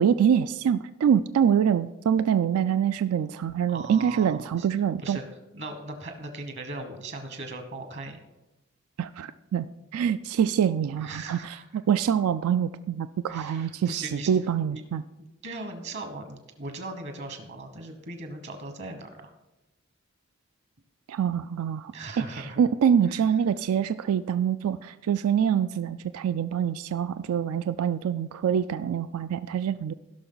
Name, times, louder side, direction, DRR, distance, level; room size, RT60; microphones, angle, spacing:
voice 1, 0.0-5.2 9.0-9.7 9.9-15.0 21.1-29.9, right 8 dB, 90° right, 13 dB, 0.3 m, -25 dB
voice 2, 3.7-4.7 5.0-5.2 5.5-8.2 11.0-11.6 13.3-14.3 14.7-14.8 15.4-19.3 21.9-22.6 23.1-23.2, right 2 dB, 55° right, 6 dB, 1.2 m, -38 dB
16.5 x 6.0 x 3.9 m, 0.99 s
head